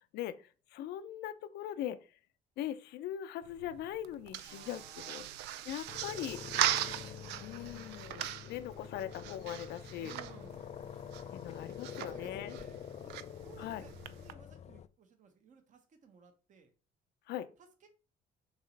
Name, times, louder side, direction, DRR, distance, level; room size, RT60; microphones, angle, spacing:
voice 1, 0.0-2.0 2.6-5.3 5.7-6.4 7.4-10.1 11.3-12.6 13.6-13.9 17.3-17.5, left 11 dB, 80° left, 0.7 m, -41 dB
sound 1, 3.4-14.3, right 12 dB, 90° right, 0.5 m, -40 dB
voice 2, 4.4-5.4 6.2-6.8 9.9-10.7 11.8-13.2 13.4-16.7 17.8-17.9, right 5 dB, 45° right, 1.2 m, -58 dB
sound 2, 5.9-14.9, left 8 dB, 40° left, 0.4 m, -47 dB
6.2 x 3.1 x 5.2 m
cardioid pair, 110°, 17 cm